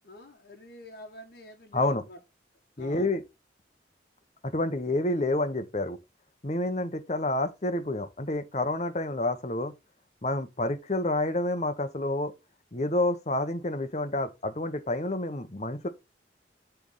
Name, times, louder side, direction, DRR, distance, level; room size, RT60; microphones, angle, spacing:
voice 1, 0.0-2.2 2.8-3.1, left 1 dB, 55° left, 1.3 m, -47 dB
voice 2, 2.8-3.2 4.4-6.0 6.4-9.7 10.2-12.3 12.7-15.9, left 2 dB, 35° left, 0.9 m, -29 dB
10.5 x 3.5 x 3.9 m
head